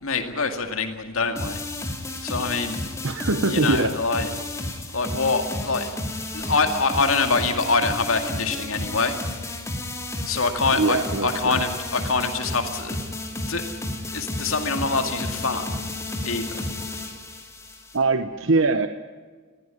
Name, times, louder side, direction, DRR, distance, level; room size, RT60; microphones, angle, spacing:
voice 1, 0.0-1.6 2.2-2.8 3.4-4.3 4.9-5.9 6.3-9.2 10.3-13.0 13.5-13.7 14.1-15.7 16.2-16.6, left 4 dB, 75° left, 6 dB, 2.1 m, -25 dB
sound 1, 1.4-18.0, left 2 dB, 15° left, 2.6 m, -32 dB
voice 2, 3.0-3.9 10.8-11.6 17.9-18.9, right 3 dB, 65° right, 9 dB, 0.9 m, -22 dB
20.5 x 15.5 x 9.7 m, 1.5 s
head